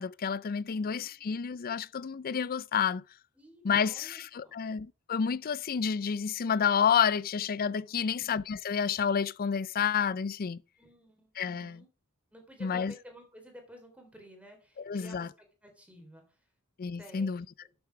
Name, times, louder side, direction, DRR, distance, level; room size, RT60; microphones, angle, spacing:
voice 1, 0.0-3.0 3.6-10.6 11.4-11.8 12.6-12.9 14.9-15.3 16.8-17.4, left 7 dB, 40° left, 0.4 m, -29 dB
voice 2, 0.7-1.2 3.3-4.6 7.8-8.3 10.8-11.9 12.3-16.4 17.0-17.4, equal, 5° right, 3.6 m, -53 dB
12.5 x 7.1 x 4.7 m
head